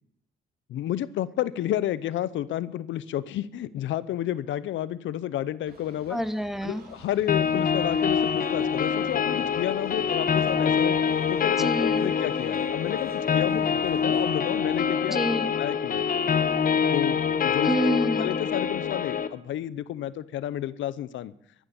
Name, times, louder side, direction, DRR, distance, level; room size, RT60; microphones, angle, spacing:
voice 1, 0.7-6.2 6.6-11.0 11.3-15.2 15.6-16.0 16.9-17.7 18.2-21.3, left 12 dB, 75° left, 17 dB, 0.7 m, -31 dB
sound 1, 5.6-14.6, right 3 dB, 50° right, 3.2 m, -51 dB
voice 2, 6.1-6.8 11.6-12.1 15.1-15.5 17.6-18.3, equal, ahead, 11 dB, 1.1 m, -28 dB
sound 2, 7.3-19.3, left 7 dB, 45° left, 1.2 m, -25 dB
14.0 x 11.0 x 7.0 m, 0.73 s
cardioid pair, 90°, 20 cm